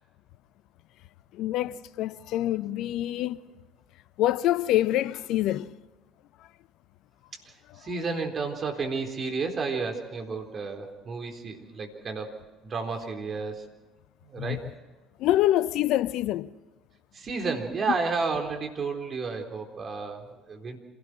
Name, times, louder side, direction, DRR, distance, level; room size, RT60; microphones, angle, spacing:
voice 1, 1.3-3.4 4.2-5.7 14.4-14.6 15.2-16.5, left 14 dB, 65° left, 0.7 m, -26 dB
voice 2, 7.3-12.3 12.6-13.7 14.2-14.7 17.1-20.8, right 4 dB, 40° right, 4.0 m, -32 dB
27.0 x 18.0 x 6.2 m
hypercardioid pair, 60°, 0 cm